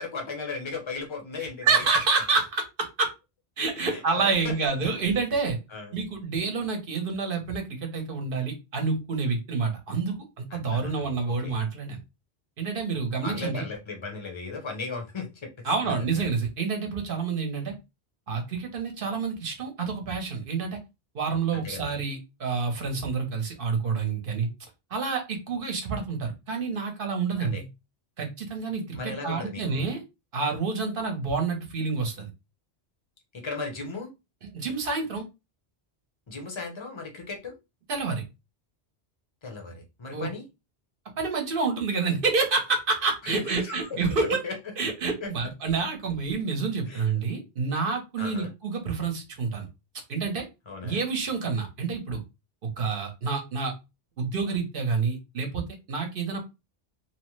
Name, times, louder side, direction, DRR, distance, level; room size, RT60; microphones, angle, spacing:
voice 1, 0.0-1.9 3.8-4.6 5.7-5.9 10.5-11.5 13.2-16.3 21.5-21.9 27.4-27.6 28.9-29.8 33.3-34.1 36.3-37.5 39.4-40.4 43.2-44.6 45.2-45.3 46.9-47.1 48.2-48.5 50.7-51.0, left 4 dB, 30° left, 2 dB, 0.7 m, -37 dB
voice 2, 1.6-3.1 3.6-5.6 5.9-12.0 12.6-13.6 15.6-17.7 18.3-20.8 21.1-24.5 24.9-27.6 28.2-30.0 30.3-32.3 34.5-35.2 37.9-38.2 40.1-40.3 41.2-44.4 44.8-49.7 50.1-50.5 50.8-52.2 52.8-53.7 54.2-56.4, right 4 dB, 55° right, 4 dB, 0.9 m, -28 dB
2.8 x 2.1 x 3.0 m, 0.25 s
omnidirectional pair, 1.2 m